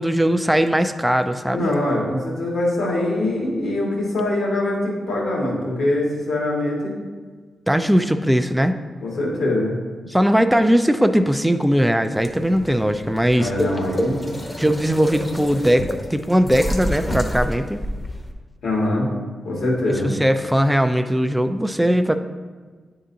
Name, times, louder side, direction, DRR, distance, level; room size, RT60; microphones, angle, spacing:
voice 1, 0.0-1.7 7.7-8.8 10.1-13.5 14.6-17.8 20.0-22.2, equal, 5° right, 8 dB, 0.4 m, -19 dB
voice 2, 1.5-6.9 9.0-9.8 13.3-14.3 18.6-19.1 19.4-20.1, left 1 dB, 80° left, -4 dB, 1.7 m, -23 dB
sound 1, 12.1-18.3, equal, 20° left, 0.8 m, -29 dB
9.1 x 3.8 x 2.7 m, 1.4 s
cardioid pair, 65°, 0 cm